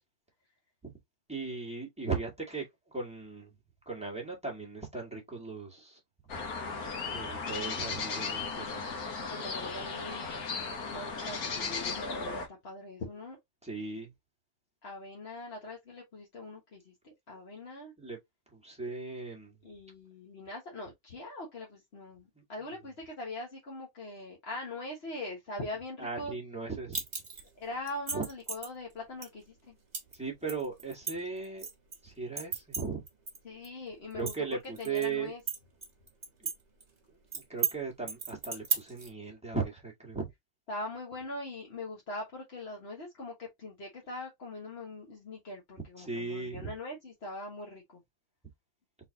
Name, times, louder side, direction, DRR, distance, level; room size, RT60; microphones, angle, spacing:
voice 1, 1.3-3.5 3.8-6.0 6.8-9.0 13.6-14.1 18.0-18.2 18.5-19.5 22.3-22.7 26.0-27.0 28.1-28.3 30.1-31.7 32.0-33.0 34.1-35.3 36.4-36.5 37.3-40.3 46.0-46.7, right 4 dB, 5° right, 1.5 m, -37 dB
sound 1, 6.3-12.5, left 4 dB, 55° left, 1.5 m, -36 dB
voice 2, 9.3-10.3 10.9-13.4 14.8-17.9 19.6-26.3 27.6-29.7 33.4-34.3 34.8-35.4 40.7-48.0, left 2 dB, 40° left, 1.3 m, -42 dB
sound 2, 26.9-27.5 27.9-28.7 29.2-29.3 29.9-30.2 30.5-32.0 32.4-33.4 33.6-33.7 34.1-35.1 35.5-36.5 36.8-36.9 37.3-37.7 38.1-39.1, right 6 dB, 25° right, 1.3 m, -34 dB
4.1 x 3.9 x 2.7 m
omnidirectional pair, 2.0 m